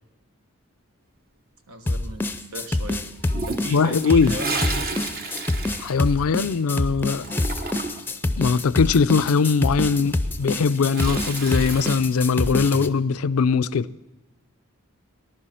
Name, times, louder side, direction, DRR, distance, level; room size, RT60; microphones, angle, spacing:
voice 1, 1.7-2.2 2.5-3.1 3.5-4.9, right 1 dB, 85° right, 1.4 m, -35 dB
sound 1, 1.9-12.9, left 2 dB, 10° left, 0.5 m, -26 dB
Toilet flush, 3.3-6.7 7.0-8.2 10.2-12.0, right 3 dB, 45° right, 1.1 m, -32 dB
voice 2, 3.7-4.4 5.8-7.3 8.4-13.9, left 5 dB, 80° left, 0.4 m, -21 dB
Walk footsteps, 8.2-8.6 8.9-13.5, right 1 dB, 65° right, 1.6 m, -47 dB
19.5 x 11.0 x 4.3 m
head